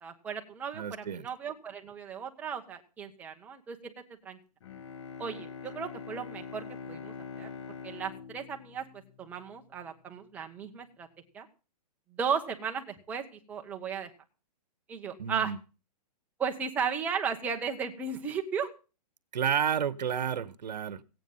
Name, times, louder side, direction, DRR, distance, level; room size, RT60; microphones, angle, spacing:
voice 1, 0.0-3.9 4.2-4.4 5.2-7.5 7.8-8.8 9.2-11.1 11.3-11.5 12.1-14.1 14.9-15.5 16.4-18.7, right 6 dB, 5° right, 3 dB, 0.9 m, -35 dB
voice 2, 0.7-1.3 15.2-15.6 19.3-21.0, right 8 dB, 80° right, 16 dB, 1.1 m, -31 dB
Bowed string instrument, 4.6-9.6, left 6 dB, 45° left, 1.0 m, -44 dB
16.5 x 9.2 x 5.4 m, 0.34 s
hypercardioid pair, 170°, 21 cm